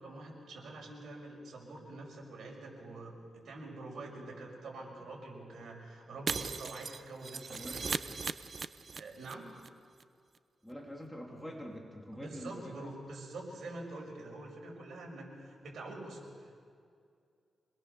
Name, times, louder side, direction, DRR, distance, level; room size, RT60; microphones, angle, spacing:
voice 1, 0.0-8.2 8.9-9.5 12.1-16.6, right 2 dB, 75° right, 0 dB, 5.9 m, -46 dB
Shatter, 6.3-9.3 9.6-9.7 10.0-10.1, right 5 dB, 45° right, 0.6 m, -38 dB
voice 2, 7.5-7.8 10.6-13.0, equal, 5° left, 0 dB, 3.0 m, -45 dB
26.5 x 20.5 x 6.8 m, 2.3 s
cardioid pair, 100°, 0 cm